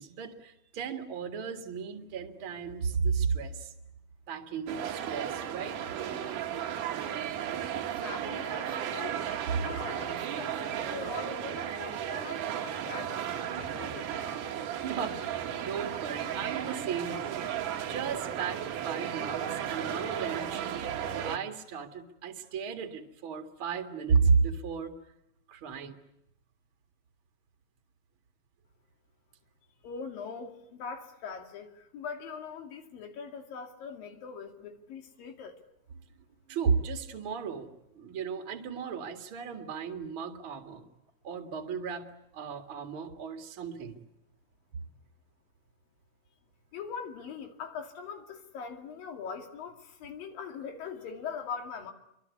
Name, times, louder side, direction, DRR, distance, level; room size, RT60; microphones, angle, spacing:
voice 1, 0.0-3.7 4.3-5.8 14.8-17.4 17.8-20.7 21.2-24.9 25.5-26.0 36.5-37.7 37.9-40.8 41.2-42.1 42.3-44.0 44.7-44.9, right 5 dB, 45° right, 2.5 m, -33 dB
sound 1, 4.7-21.4, right 9 dB, 70° right, 2.8 m, -35 dB
voice 2, 7.7-9.2 9.6-14.4 29.8-35.6 46.7-51.9, left 6 dB, 80° left, 4.2 m, -42 dB
27.0 x 24.0 x 8.4 m
omnidirectional pair, 3.9 m